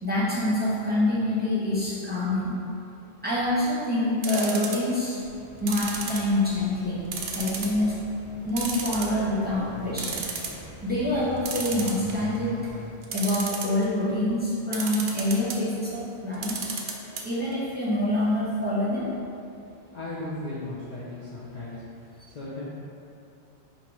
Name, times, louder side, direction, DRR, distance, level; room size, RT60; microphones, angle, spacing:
voice 1, 0.0-2.6 3.2-5.2 5.6-7.0 7.3-7.9 8.4-10.2 10.8-12.5 13.1-16.6 17.2-19.0, left 1 dB, 10° right, -10 dB, 1.0 m, -26 dB
sound 1, 4.2-5.0 5.7-6.6 7.1-7.8 8.1-8.2 8.6-9.4 9.7-9.8 10.0-10.6 11.4-12.3 13.0-13.9 14.7-15.6 16.3-17.2 17.5-17.6 17.9-18.0, right 5 dB, 60° right, 0.6 m, -32 dB
sound 2, 5.2-12.9, left 1 dB, 60° left, 1.6 m, -44 dB
voice 2, 19.9-21.8 22.2-22.6, left 2 dB, 45° left, -9 dB, 0.7 m, -36 dB
3.9 x 2.9 x 4.7 m, 2.6 s
omnidirectional pair, 1.1 m